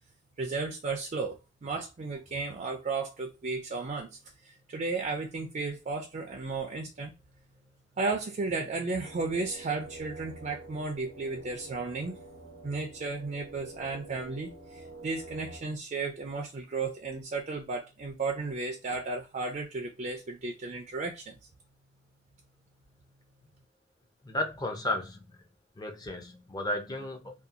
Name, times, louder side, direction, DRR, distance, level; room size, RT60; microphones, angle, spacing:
voice 1, 0.4-1.4 1.6-4.1 4.4-7.1 8.0-12.2 12.6-21.3, right 3 dB, 40° right, 0.4 m, -34 dB
sound 1, 9.0-15.6, right 2 dB, 90° right, 0.8 m, -48 dB
voice 2, 24.3-25.2 25.8-27.3, left 1 dB, 20° left, 0.5 m, -33 dB
2.7 x 2.3 x 2.5 m
head